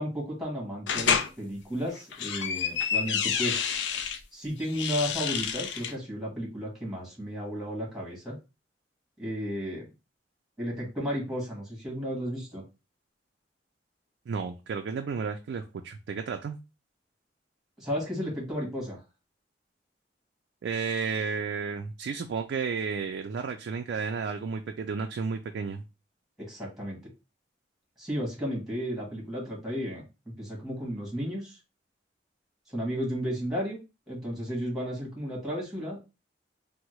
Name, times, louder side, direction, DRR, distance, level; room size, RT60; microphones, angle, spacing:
voice 1, 0.0-3.8 4.3-8.4 9.2-9.9 10.6-12.6 17.8-19.0 26.4-27.0 28.0-30.0 30.4-31.6 32.7-33.8 34.1-36.0, equal, ahead, -3 dB, 1.2 m, -33 dB
sound 1, 0.9-1.3 2.0-4.2 4.7-5.9, left 7 dB, 80° left, 0.4 m, -29 dB
voice 2, 14.3-16.6 20.6-25.8, right 5 dB, 75° right, 4 dB, 0.3 m, -32 dB
3.5 x 2.0 x 3.0 m, 0.29 s
head